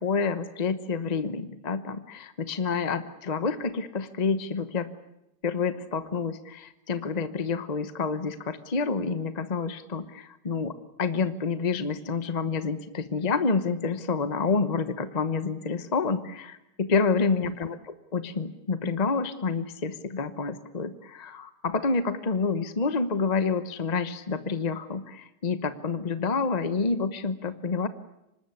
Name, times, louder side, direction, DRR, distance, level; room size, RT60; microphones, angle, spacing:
voice 1, 0.0-4.9 5.4-17.8 18.1-27.9, left 4 dB, 35° left, 11 dB, 0.6 m, -28 dB
25.5 x 20.0 x 9.8 m, 0.89 s
omnidirectional pair, 2.4 m